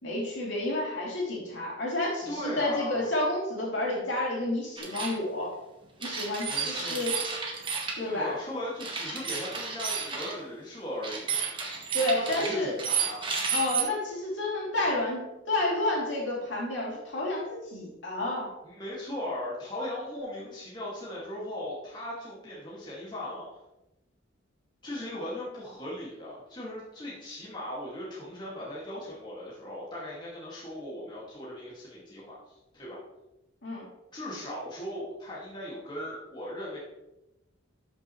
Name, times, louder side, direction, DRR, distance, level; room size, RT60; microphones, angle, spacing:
voice 1, 0.0-5.5 6.0-7.1 7.9-8.3 11.9-12.8 13.5-18.5 33.6-33.9, left 1 dB, 65° left, -4 dB, 3.2 m, -30 dB
voice 2, 2.3-3.1 6.5-7.0 8.0-11.5 12.1-13.3 18.6-23.5 24.8-33.0 34.1-36.8, left 1 dB, 20° left, -7 dB, 2.2 m, -38 dB
sound 1, 4.8-5.2 6.0-8.0 8.8-10.3 11.0-13.8, right 6 dB, 25° right, 1.3 m, -32 dB
12.5 x 6.1 x 3.2 m, 0.95 s
head